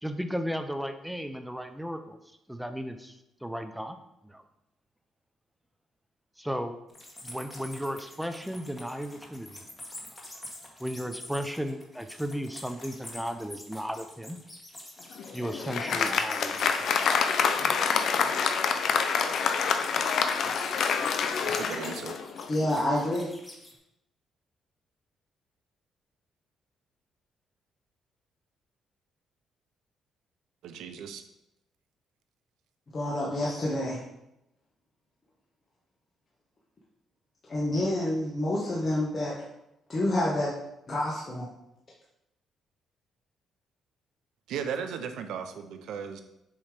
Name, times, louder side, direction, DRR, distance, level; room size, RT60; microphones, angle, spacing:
voice 1, 0.0-2.2 2.5-3.1 3.4-4.0 4.2-4.4 6.4-6.8 7.2-9.6 10.8-14.4 15.3-17.2, equal, 5° right, 8 dB, 0.5 m, -35 dB
sound 1, 6.9-18.2 19.8-23.7, left 1 dB, 20° left, 1.7 m, -46 dB
Applause, 15.1-22.7, left 6 dB, 65° left, 0.6 m, -27 dB
voice 2, 21.4-22.2 30.6-31.2 44.5-46.2, right 7 dB, 85° right, 8 dB, 0.6 m, -36 dB
voice 3, 22.5-23.3 32.9-34.0 37.5-39.4 39.9-40.6 40.9-41.5, left 1 dB, 35° left, -5 dB, 1.3 m, -28 dB
7.2 x 3.2 x 5.0 m, 0.85 s
cardioid pair, 90°, 0 cm